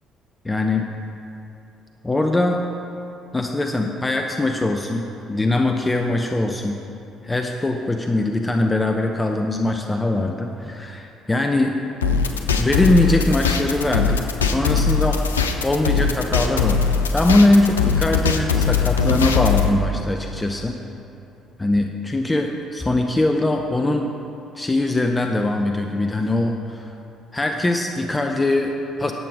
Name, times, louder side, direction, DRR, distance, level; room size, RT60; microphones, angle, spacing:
voice 1, 0.4-0.9 2.0-2.6 3.3-6.8 7.2-11.8 12.6-15.2 15.6-20.8 21.6-24.1 24.5-26.9 27.3-29.1, left 2 dB, 15° left, 3 dB, 0.7 m, -21 dB
sound 1, 12.0-19.7, left 6 dB, 80° left, 0.5 m, -20 dB
11.0 x 7.7 x 4.9 m, 2.9 s
figure-of-eight pair, 50°, 0 cm